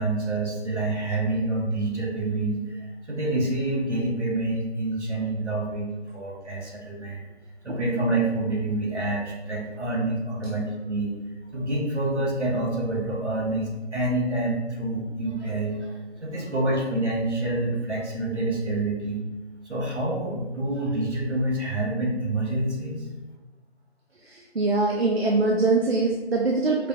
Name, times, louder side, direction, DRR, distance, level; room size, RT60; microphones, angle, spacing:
voice 1, 0.0-7.3 7.6-11.1 11.5-19.2 19.6-23.1, right 2 dB, 80° right, -2 dB, 1.3 m, -27 dB
voice 2, 24.2-26.9, right 3 dB, 65° right, 0 dB, 0.5 m, -23 dB
4.8 x 2.3 x 2.8 m, 1.1 s
figure-of-eight pair, 175°, 34 cm